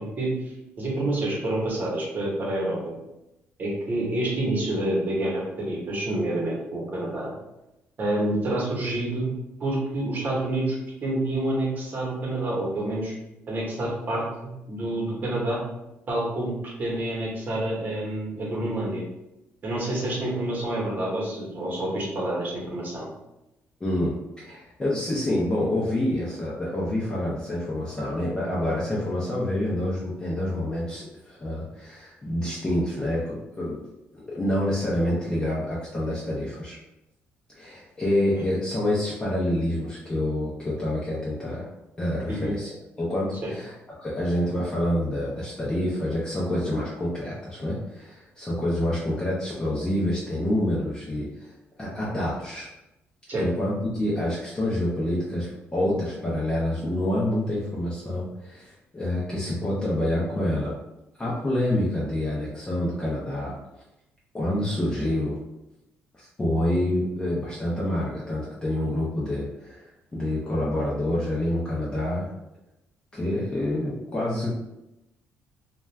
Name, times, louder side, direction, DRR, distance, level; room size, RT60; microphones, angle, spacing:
voice 1, 0.0-2.9 3.6-7.3 8.0-9.3 9.6-10.8 11.0-13.1 13.5-15.6 16.1-19.0 19.6-23.1 38.4-38.5 42.3-42.5 43.4-43.5 53.3-53.4, right 1 dB, 40° right, -4 dB, 1.0 m, -28 dB
voice 2, 23.8-33.8 34.1-36.8 37.5-41.7 42.0-43.7 44.0-52.7 53.3-60.7 61.2-63.5 64.3-65.3 66.1-72.3 73.1-74.6, left 1 dB, 15° left, -7 dB, 0.5 m, -27 dB
2.4 x 2.2 x 3.1 m, 0.92 s
cardioid pair, 140°, 5 cm